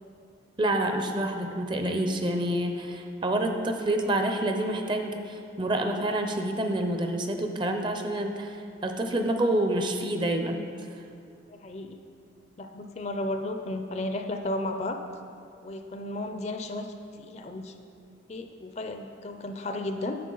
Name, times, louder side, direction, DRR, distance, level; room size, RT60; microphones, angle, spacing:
voice 1, 0.6-8.6 8.8-10.6, right 1 dB, 25° right, 5 dB, 0.5 m, -28 dB
voice 2, 11.5-12.0 12.6-15.0 15.6-17.7 18.3-20.2, left 1 dB, 35° left, 6 dB, 0.4 m, -34 dB
10.0 x 7.0 x 3.8 m, 2.5 s
head